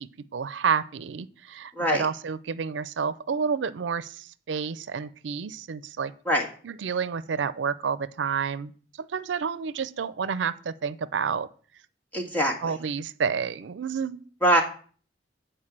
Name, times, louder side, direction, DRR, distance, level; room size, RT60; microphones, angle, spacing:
voice 1, 0.0-6.1 6.6-8.7 9.0-11.5 12.6-14.2, right 6 dB, 85° right, 15 dB, 0.5 m, -29 dB
voice 2, 12.1-12.7 14.4-14.6, equal, 10° left, 0 dB, 1.6 m, -23 dB
8.5 x 4.5 x 7.3 m, 0.43 s
head